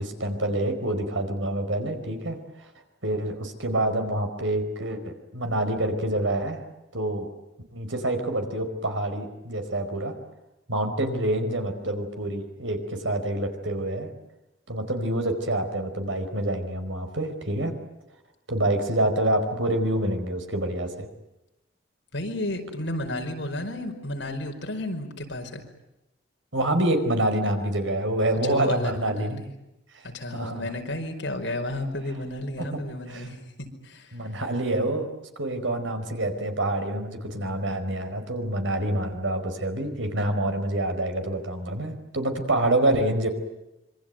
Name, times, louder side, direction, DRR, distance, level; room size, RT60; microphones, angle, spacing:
voice 1, 0.0-2.7 3.0-6.6 6.9-7.3 7.7-10.1 10.7-14.1 14.7-17.7 18.5-21.1 26.5-29.4 30.3-30.6 32.6-32.8 33.1-33.3 34.1-35.1 35.4-43.3, right 1 dB, 90° right, 6 dB, 4.8 m, -27 dB
voice 2, 22.1-25.7 28.4-29.4 30.0-34.2, left 1 dB, 70° left, 3 dB, 5.2 m, -32 dB
26.5 x 24.5 x 9.2 m, 0.93 s
head